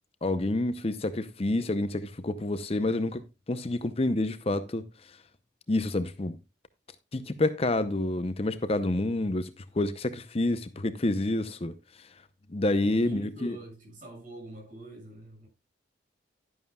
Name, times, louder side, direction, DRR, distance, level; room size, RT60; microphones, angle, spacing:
voice 1, 0.2-4.8 5.7-6.4 7.1-12.1 12.5-13.6, left 2 dB, 35° left, 0.6 m, -28 dB
voice 2, 12.8-15.5, right 2 dB, 45° right, 6.2 m, -44 dB
11.5 x 11.0 x 2.3 m
head